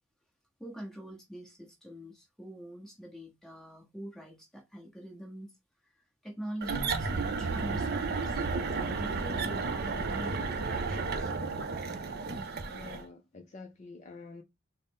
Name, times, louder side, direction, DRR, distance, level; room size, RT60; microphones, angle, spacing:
voice 1, 0.6-5.5 5.8-5.9 6.2-11.3, equal, ahead, 0.9 m, -44 dB
sound 1, 6.6-13.0, right 4 dB, 45° right, 0.5 m, -32 dB
voice 2, 12.7-14.4, left 3 dB, 30° left, 0.4 m, -47 dB
3.9 x 2.0 x 3.5 m
head